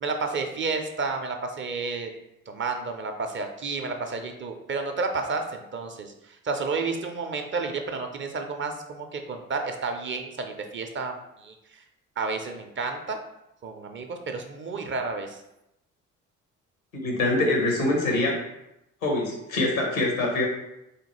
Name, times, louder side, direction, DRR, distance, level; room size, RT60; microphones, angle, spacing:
voice 1, 0.0-2.1 2.5-6.1 6.4-11.1 11.4-11.5 12.2-13.2 13.6-15.4, right 4 dB, 30° right, 5 dB, 0.5 m, -31 dB
voice 2, 17.0-18.4 19.0-20.5, left 2 dB, 85° left, 0 dB, 0.9 m, -24 dB
3.7 x 2.8 x 3.0 m, 0.86 s
figure-of-eight pair, 45°, 40 cm